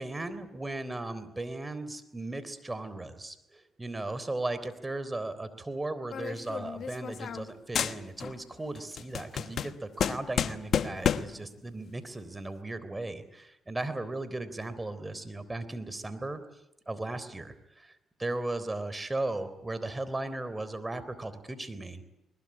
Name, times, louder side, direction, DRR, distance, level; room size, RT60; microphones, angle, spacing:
voice 1, 0.0-16.4 16.9-17.9 18.2-22.1, right 2 dB, 20° right, 12 dB, 3.6 m, -36 dB
sound 1, 6.1-7.5 7.8-8.4 8.8-11.4, left 8 dB, 60° left, 1.1 m, -31 dB
21.5 x 20.5 x 9.8 m, 0.87 s
supercardioid pair, 55°, 0 cm